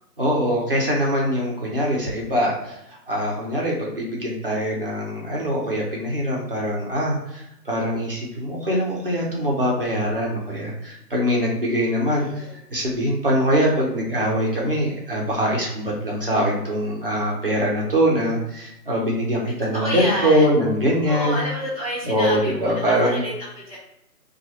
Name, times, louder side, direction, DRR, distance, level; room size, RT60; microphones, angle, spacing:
voice 1, 0.2-2.8 3.1-21.4 22.0-23.2, equal, 35° right, -3 dB, 0.5 m, -23 dB
voice 2, 12.0-12.6 19.7-20.5 21.1-23.8, equal, 20° left, -9 dB, 0.8 m, -29 dB
2.9 x 2.3 x 2.7 m, 0.83 s
hypercardioid pair, 165°, 49 cm